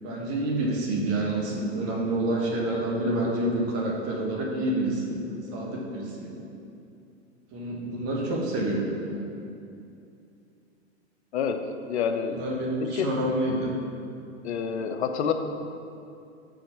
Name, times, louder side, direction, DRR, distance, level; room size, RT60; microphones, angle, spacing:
voice 1, 0.0-6.4 7.5-9.2 12.3-13.7, right 1 dB, 45° right, -2 dB, 1.4 m, -28 dB
voice 2, 11.3-12.4 12.8-13.1 14.4-15.3, left 7 dB, 75° left, 7 dB, 0.6 m, -28 dB
5.0 x 3.9 x 5.8 m, 2.6 s
hypercardioid pair, 105°, 34 cm